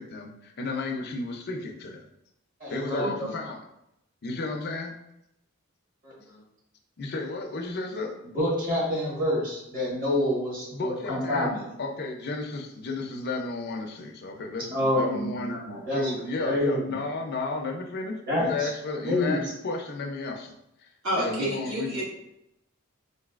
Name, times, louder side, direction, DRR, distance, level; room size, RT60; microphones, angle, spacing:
voice 1, 0.0-2.0 2.7-3.6 4.2-4.9 7.0-8.1 10.7-11.5 11.8-15.6 15.9-20.5 20.8-20.9 21.2-22.0, left 3 dB, 50° left, 2 dB, 0.5 m, -33 dB
voice 2, 2.6-3.3 6.0-6.4 8.3-11.6 14.7-16.1 16.4-16.9 18.3-18.7 19.0-19.4, left 1 dB, 40° right, -5 dB, 1.3 m, -27 dB
voice 3, 21.0-22.0, equal, 65° right, -7 dB, 1.4 m, -28 dB
3.9 x 2.7 x 2.4 m, 0.83 s
head